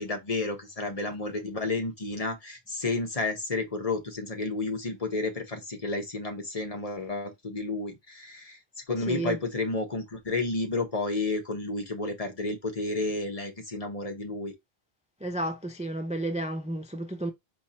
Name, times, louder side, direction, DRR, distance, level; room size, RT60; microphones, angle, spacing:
voice 1, 0.0-8.6 8.9-14.5, left 3 dB, 35° left, 1.1 m, -31 dB
voice 2, 9.1-9.4 15.2-17.3, right 1 dB, 10° right, 0.4 m, -32 dB
4.5 x 2.4 x 4.2 m
omnidirectional pair, 1.0 m